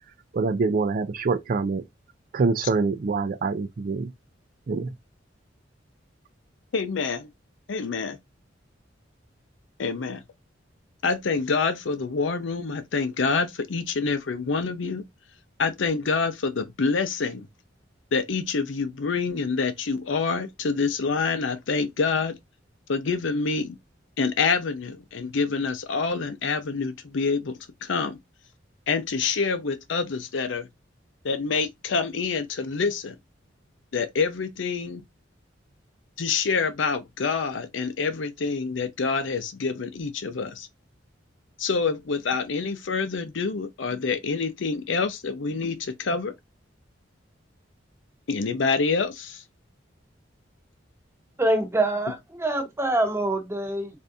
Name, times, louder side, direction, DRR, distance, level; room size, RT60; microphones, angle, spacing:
voice 1, 0.3-1.8 2.3-4.1 4.7-4.9, right 4 dB, 50° right, 0.4 m, -25 dB
voice 2, 6.7-7.3 7.7-8.2 9.8-10.2 11.0-15.0 15.6-17.5 18.1-22.3 22.9-23.8 24.2-28.2 28.9-30.7 31.2-33.2 33.9-35.0 36.2-40.7 41.6-46.3 48.3-49.4, left 4 dB, 75° left, 0.5 m, -27 dB
voice 3, 51.4-53.9, right 1 dB, 15° right, 0.9 m, -25 dB
3.4 x 2.6 x 2.6 m
head